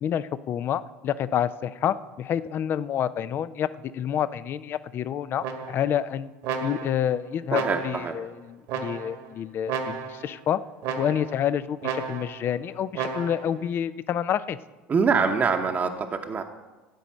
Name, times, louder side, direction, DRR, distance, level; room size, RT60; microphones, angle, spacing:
voice 1, 0.0-3.7 3.9-6.3 6.6-10.6 11.0-14.6, left 9 dB, 45° left, 15 dB, 0.5 m, -28 dB
sound 1, 5.4-6.0 6.4-7.1 7.5-8.2 8.7-9.3 9.7-10.3 10.8-11.4 11.8-12.5 12.9-13.6, right 6 dB, 70° right, 1.6 m, -32 dB
voice 2, 7.5-8.2 14.9-16.4, right 5 dB, 30° right, 3 dB, 0.9 m, -24 dB
13.0 x 5.1 x 8.4 m, 1.2 s
hypercardioid pair, 80°, 5 cm